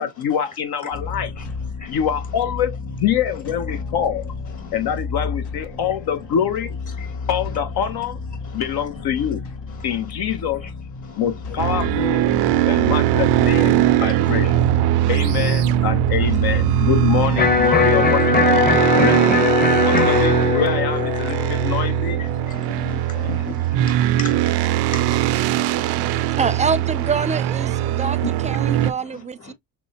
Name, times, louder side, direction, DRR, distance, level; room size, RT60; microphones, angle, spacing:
voice 1, 0.0-1.3 1.9-4.3 4.7-6.8 7.3-8.2 8.5-9.4 9.8-10.7 11.2-12.3 12.7-14.6 15.1-18.6 18.9-19.5 19.8-22.3 22.7-23.6, left 9 dB, 65° left, 0.8 m, -25 dB
sound 1, 0.9-17.7, left 4 dB, 85° left, 2.1 m, -32 dB
voice 2, 7.0-7.3 8.5-8.6 9.7-9.9 10.6-10.7 11.0-11.6 12.3-12.7 14.0-14.1 14.4-14.6 15.0-15.1 16.5-16.6 17.8-18.0 19.7-20.1 21.3-21.4 22.2-26.4 28.2-28.3 28.6-29.0 29.4-29.5, left 3 dB, 45° left, 1.7 m, -39 dB
sound 2, 11.6-28.9, right 13 dB, 75° right, 0.6 m, -20 dB
Electric guitar, 17.4-23.4, left 4 dB, 25° left, 0.9 m, -20 dB
voice 3, 26.4-29.5, right 5 dB, 20° right, 0.5 m, -25 dB
6.0 x 2.1 x 2.8 m
supercardioid pair, 65°, 40 cm